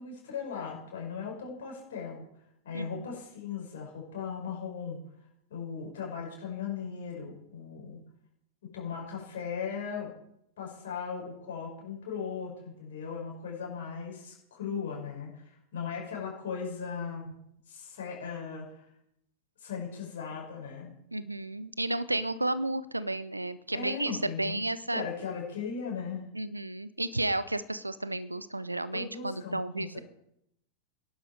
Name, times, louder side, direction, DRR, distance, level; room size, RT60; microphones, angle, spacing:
voice 1, 0.0-2.2 2.6-5.0 5.5-8.0 8.6-10.1 10.6-17.3 17.7-18.8 19.6-20.9 23.7-26.2 28.9-30.0, left 6 dB, 60° left, -1 dB, 6.1 m, -38 dB
voice 2, 2.7-3.1 21.1-25.0 26.3-30.0, right 1 dB, 85° right, 16 dB, 0.6 m, -32 dB
17.0 x 11.0 x 4.8 m, 0.78 s
figure-of-eight pair, 90°, 0 cm